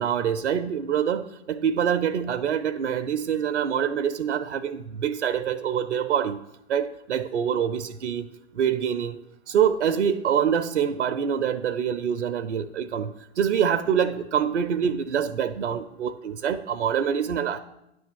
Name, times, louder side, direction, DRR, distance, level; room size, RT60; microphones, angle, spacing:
voice 1, 0.0-6.4 6.7-8.3 8.5-9.2 9.5-17.6, right 8 dB, 85° right, 11 dB, 0.5 m, -25 dB
9.7 x 3.4 x 6.9 m, 0.85 s
figure-of-eight pair, 100°, 34 cm